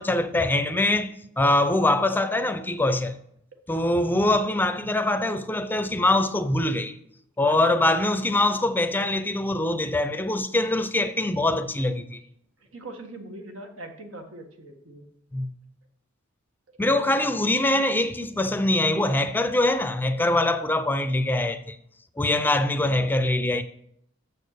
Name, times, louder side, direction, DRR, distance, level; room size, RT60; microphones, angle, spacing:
voice 1, 0.0-3.2 3.7-6.9 7.4-12.2 15.3-15.5 16.8-21.8 22.2-23.6, left 2 dB, 10° left, 0.5 m, -23 dB
voice 2, 3.7-4.2 7.4-7.8 12.6-15.0 17.1-17.2 22.8-23.1, right 2 dB, 85° right, 1.6 m, -41 dB
7.1 x 6.4 x 6.6 m
head